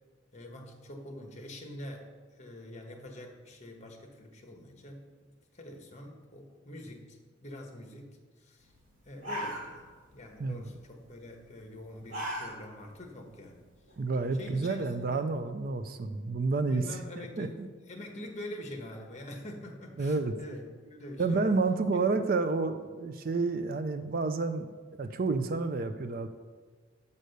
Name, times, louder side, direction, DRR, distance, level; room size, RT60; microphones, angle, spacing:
voice 1, 0.3-8.1 8.4-8.7 9.0-9.9 10.1-13.6 14.3-15.2 16.7-17.6 17.9-21.6, left 1 dB, 35° left, 2 dB, 1.1 m, -45 dB
sound 1, 8.8-8.9 9.1-10.1 10.4-10.8 11.8-12.9 13.3-13.4 13.9-14.9, equal, 85° right, 2.7 m, -38 dB
voice 2, 14.0-16.8 17.4-17.7 20.0-20.3 21.2-24.7 25.0-26.3, right 3 dB, 45° right, 9 dB, 0.4 m, -29 dB
6.3 x 5.4 x 6.7 m, 1.5 s
head